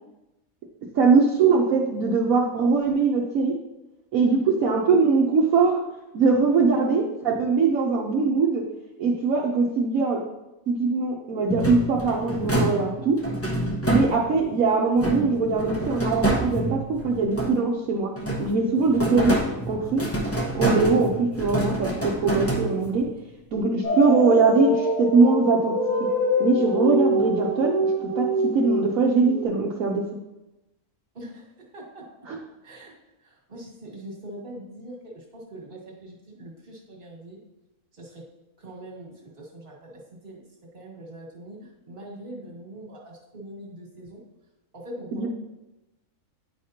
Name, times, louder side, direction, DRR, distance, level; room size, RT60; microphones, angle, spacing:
voice 1, 0.9-3.5 4.1-5.8 6.1-8.6 9.0-10.2 10.7-13.2 13.9-16.8 17.0-18.1 18.4-19.3 19.7-20.0 20.5-23.0 23.5-26.1 26.4-28.3 28.5-30.0 32.3-32.4 45.1-45.3, right 4 dB, 70° right, -2 dB, 1.1 m, -21 dB
sound 1, 11.5-14.5 15.0-17.8 18.2-23.1, right 1 dB, 15° left, 0.6 m, -27 dB
sound 2, 23.8-29.4, equal, 80° left, 2.3 m, -25 dB
voice 2, 31.7-32.0 32.6-32.9 33.2-37.4 38.0-38.2 38.6-40.4 40.7-44.2 44.7-45.3, right 1 dB, 40° right, -2 dB, 1.7 m, -42 dB
9.2 x 5.0 x 2.8 m, 0.98 s
omnidirectional pair, 1.5 m